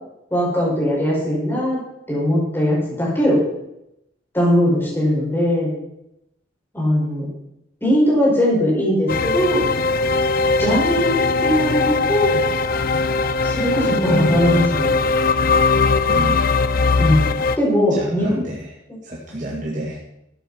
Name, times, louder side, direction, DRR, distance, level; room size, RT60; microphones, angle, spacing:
voice 1, 0.3-1.8 2.1-3.4 4.3-5.7 6.7-7.3 7.8-9.7 10.6-12.4 13.4-14.9 17.0-17.3 17.6-18.3, equal, 10° left, -5 dB, 6.0 m, -19 dB
sound 1, 9.1-17.6, left 4 dB, 50° left, 0.6 m, -19 dB
voice 2, 16.1-16.5 17.9-18.7 19.0-20.0, equal, 40° right, -2 dB, 2.0 m, -29 dB
13.5 x 9.1 x 5.9 m, 0.83 s
head